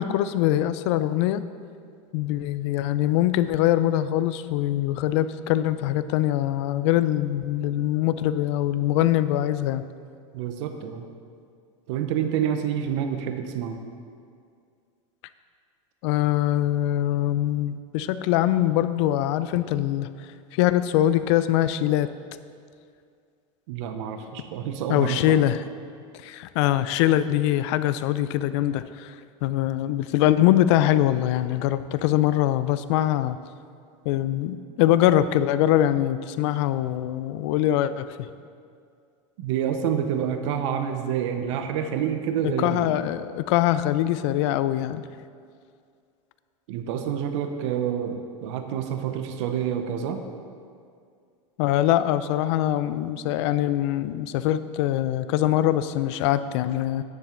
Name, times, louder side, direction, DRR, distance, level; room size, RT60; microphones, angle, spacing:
voice 1, 0.0-1.4 2.1-9.8 16.0-20.1 20.5-22.1 24.9-25.6 26.2-29.2 29.4-33.4 34.1-38.1 42.4-45.1 51.6-57.0, left 13 dB, 65° left, 13 dB, 0.4 m, -23 dB
voice 2, 10.3-11.1 11.9-13.8 23.7-25.4 39.4-43.0 46.7-50.2, right 8 dB, 70° right, 6 dB, 0.8 m, -28 dB
9.9 x 7.2 x 3.8 m, 2.3 s
supercardioid pair, 140°, 16 cm